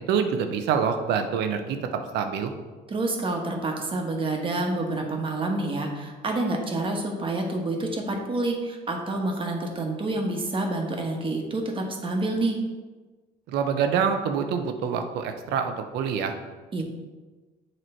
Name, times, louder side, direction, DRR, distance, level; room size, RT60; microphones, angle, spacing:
voice 1, 0.1-2.5 13.5-16.3, right 7 dB, 85° right, 6 dB, 0.7 m, -26 dB
voice 2, 2.9-12.6 16.7-16.8, right 2 dB, 30° right, 2 dB, 1.1 m, -28 dB
7.7 x 3.1 x 4.3 m, 1.3 s
cardioid pair, 110°, 17 cm